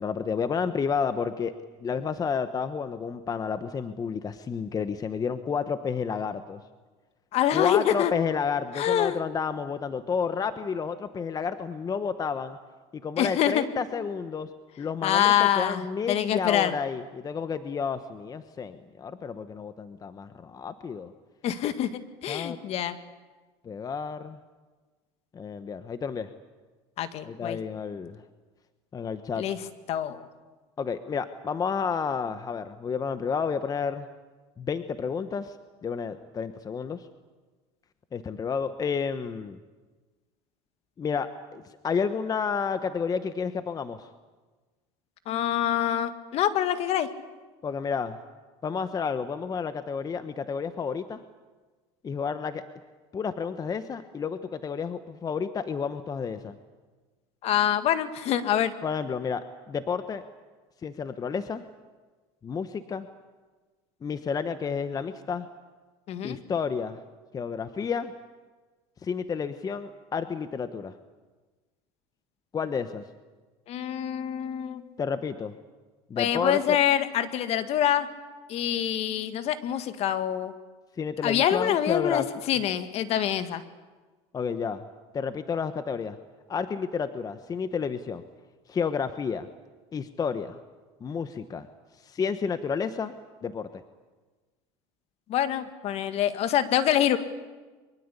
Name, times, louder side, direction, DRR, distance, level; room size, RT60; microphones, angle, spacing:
voice 1, 0.0-1.5 1.8-6.6 7.5-12.6 12.9-14.5 14.8-21.1 22.3-22.6 23.6-24.4 25.3-26.3 27.2-28.2 28.9-29.5 30.8-34.1 34.6-35.6 35.8-37.1 38.1-39.6 41.0-44.1 47.6-48.2 48.6-51.2 52.0-52.6 53.1-56.6 58.8-60.2 60.8-61.6 62.4-63.1 64.0-65.5 66.2-67.0 67.3-68.1 69.0-70.9 72.5-73.0 75.0-75.5 76.1-76.8 81.0-82.3 84.3-84.8 85.1-86.2 86.5-88.2 88.7-89.5 89.9-90.6 91.0-91.7 92.0-93.8, left 6 dB, 30° left, 10 dB, 1.2 m, -31 dB
voice 2, 7.3-8.1 8.8-9.2 13.2-13.6 15.0-16.7 21.4-23.0 27.0-27.6 29.4-29.6 29.9-30.3 45.3-47.1 57.4-58.7 66.1-66.4 73.7-74.8 76.2-78.1 78.5-80.5 81.2-83.6 95.3-97.2, left 10 dB, 50° left, 10 dB, 1.9 m, -25 dB
23.5 x 23.5 x 8.4 m, 1.3 s
supercardioid pair, 105°, 13 cm